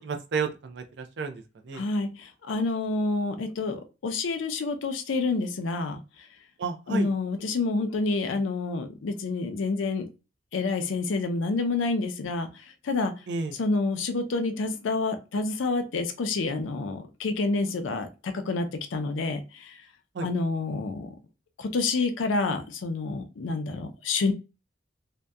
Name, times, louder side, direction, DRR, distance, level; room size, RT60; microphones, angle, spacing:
voice 1, 0.0-1.8 6.6-7.1 13.3-13.5 20.2-20.3, right 4 dB, 60° right, 6 dB, 0.4 m, -32 dB
voice 2, 1.7-6.0 6.9-10.1 10.5-12.5 12.8-13.1 13.6-19.8 20.2-21.1 21.6-24.3, left 3 dB, 80° left, 7 dB, 0.4 m, -28 dB
2.7 x 2.2 x 2.2 m, 0.30 s
head